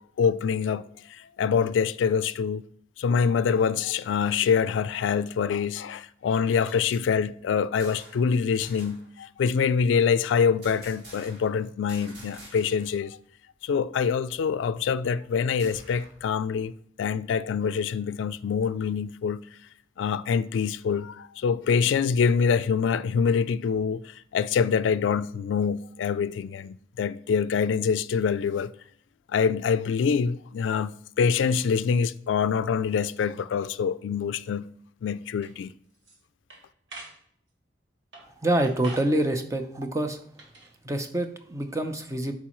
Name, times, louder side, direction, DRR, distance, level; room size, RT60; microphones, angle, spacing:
voice 1, 0.2-2.6 3.0-13.2 13.6-16.7 17.0-19.4 20.0-28.7 29.3-34.7 35.0-35.7, left 6 dB, 90° left, 0.3 m, -25 dB
sound 1, 6.6-8.3 8.6-9.1 10.6-11.6 11.9-13.0 13.2-13.3 13.7-16.3, right 1 dB, 65° right, 2.4 m, -49 dB
sound 2, 35.4-35.5 35.9-36.2 36.5-37.2 38.1-38.3 38.6-39.1 40.3-40.7, right 2 dB, 80° right, 1.4 m, -45 dB
voice 2, 38.4-40.2 40.8-42.3, right 1 dB, 15° right, 0.5 m, -26 dB
8.3 x 4.8 x 3.0 m
head